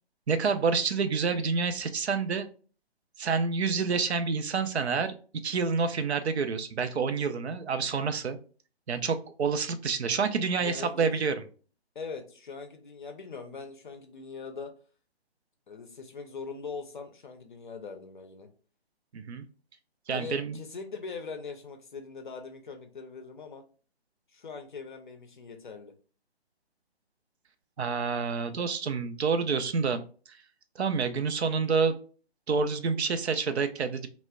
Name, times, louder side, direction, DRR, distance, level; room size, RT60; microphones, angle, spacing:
voice 1, 0.3-2.5 3.2-5.2 5.4-8.4 8.9-11.3 19.1-19.5 20.1-20.6 27.8-30.0 30.8-32.0 32.5-34.1, right 5 dB, 85° right, 9 dB, 0.5 m, -28 dB
voice 2, 10.6-11.3 12.0-14.7 15.7-18.5 20.1-23.6 24.3-25.9, left 4 dB, 50° left, 5 dB, 0.4 m, -41 dB
2.2 x 2.0 x 3.5 m, 0.39 s
figure-of-eight pair, 145°, 32 cm